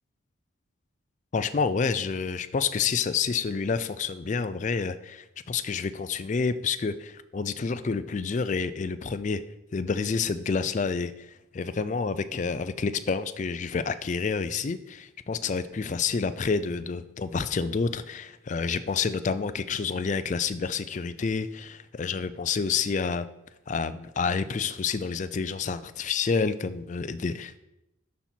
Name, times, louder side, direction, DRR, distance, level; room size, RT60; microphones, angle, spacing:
voice 1, 1.3-9.4 9.7-11.3 11.5-23.3 23.7-27.6, left 5 dB, 35° left, 13 dB, 0.3 m, -29 dB
11.5 x 4.2 x 4.4 m, 0.90 s
head